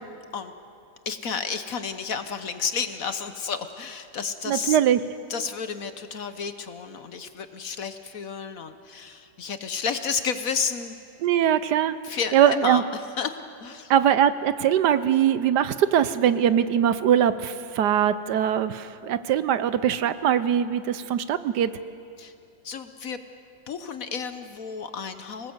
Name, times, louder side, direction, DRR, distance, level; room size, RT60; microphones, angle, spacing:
voice 1, 1.1-4.8 5.3-11.0 12.0-12.8 13.2-13.9 22.2-22.3 22.6-23.2 23.7-25.5, left 6 dB, 55° left, 9 dB, 1.2 m, -31 dB
voice 2, 4.5-5.0 11.2-11.9 12.3-12.8 13.9-21.7, right 9 dB, 70° right, 13 dB, 1.2 m, -21 dB
26.5 x 19.0 x 8.0 m, 2.6 s
omnidirectional pair, 2.0 m